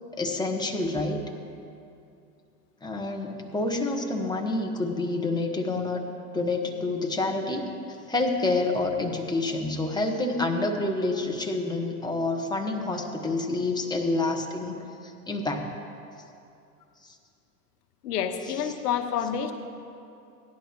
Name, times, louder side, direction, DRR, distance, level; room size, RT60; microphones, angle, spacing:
voice 1, 0.1-1.3 2.8-6.0 6.3-7.6 8.1-15.7 17.0-17.2, left 2 dB, 10° left, 2 dB, 1.2 m, -28 dB
voice 2, 18.0-19.5, left 8 dB, 85° left, 7 dB, 1.1 m, -28 dB
17.5 x 11.0 x 3.0 m, 2.6 s
hypercardioid pair, 100°, 46 cm